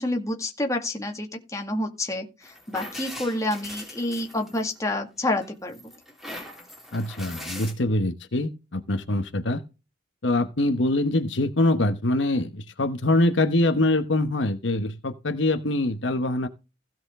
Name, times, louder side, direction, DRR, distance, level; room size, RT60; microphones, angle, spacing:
voice 1, 0.0-5.8, left 1 dB, 15° left, 2.0 m, -28 dB
sound 1, 2.4-5.0 5.4-7.7, left 1 dB, ahead, 2.9 m, -40 dB
voice 2, 6.9-9.6 10.2-16.5, left 2 dB, 75° left, 1.1 m, -24 dB
16.0 x 6.1 x 3.7 m
head